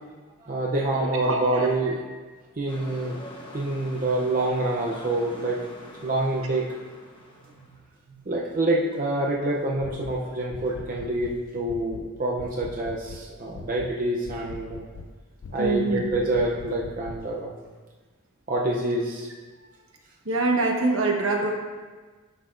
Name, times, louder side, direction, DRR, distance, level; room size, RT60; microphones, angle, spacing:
voice 1, 0.4-2.0 2.6-3.2 3.5-5.6 6.0-6.6 8.3-14.8 15.5-17.5 18.5-19.3, right 2 dB, 40° right, -3 dB, 0.6 m, -26 dB
voice 2, 0.9-1.9 8.1-8.2 15.6-16.0 20.2-21.5, right 2 dB, 70° right, 1 dB, 1.0 m, -25 dB
sound 1, 2.7-7.8, left 1 dB, 25° left, 1.0 m, -45 dB
sound 2, 9.8-10.2 10.5-11.4 11.7-12.1 12.4-13.3 13.6-14.0 14.3-15.1 15.4-15.8 16.1-17.2, left 4 dB, 65° left, 0.4 m, -41 dB
10.0 x 5.7 x 2.5 m, 1.4 s
head